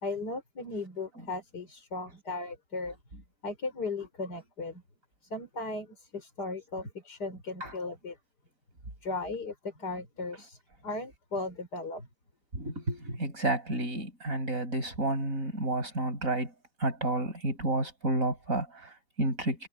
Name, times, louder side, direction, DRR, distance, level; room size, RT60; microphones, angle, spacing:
voice 1, 0.0-3.0 3.4-4.8 5.3-8.2 9.0-12.1, left 3 dB, 75° left, 5.3 m, -37 dB
voice 2, 12.5-16.5 16.8-19.7, right 2 dB, 50° right, 7.0 m, -31 dB
omnidirectional pair, 1.8 m